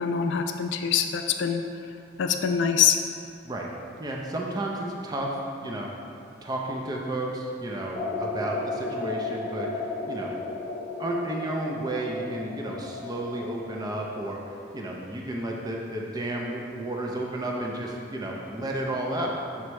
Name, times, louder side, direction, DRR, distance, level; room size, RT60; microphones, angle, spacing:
voice 1, 0.0-1.6 2.2-3.0, left 7 dB, 65° left, 6 dB, 0.3 m, -24 dB
voice 2, 4.0-5.9 6.4-10.3 11.0-19.6, right 1 dB, 20° right, -1 dB, 0.5 m, -32 dB
sound 1, 7.9-13.9, left 3 dB, 15° left, 0.9 m, -34 dB
7.0 x 3.2 x 4.6 m, 2.5 s
head